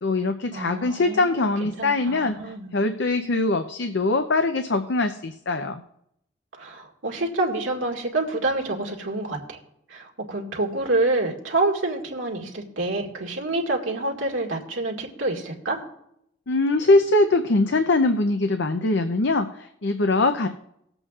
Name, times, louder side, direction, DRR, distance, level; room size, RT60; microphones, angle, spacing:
voice 1, 0.0-2.3 2.7-5.8 16.5-20.5, left 2 dB, 60° left, 7 dB, 0.6 m, -22 dB
voice 2, 0.5-2.8 6.6-9.6 9.9-15.8, right 2 dB, 75° right, 0 dB, 1.9 m, -27 dB
19.5 x 7.9 x 2.4 m, 0.76 s
head